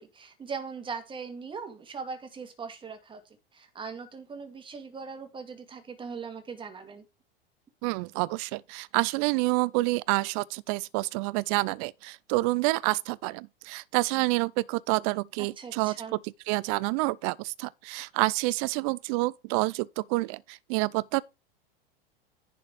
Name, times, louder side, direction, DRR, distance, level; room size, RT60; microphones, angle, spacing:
voice 1, 0.0-7.0 15.6-16.2, right 5 dB, 15° right, 2.1 m, -40 dB
voice 2, 7.8-16.0 16.5-21.2, right 22 dB, 35° right, 0.5 m, -28 dB
10.5 x 4.4 x 4.7 m
figure-of-eight pair, 90°, 29 cm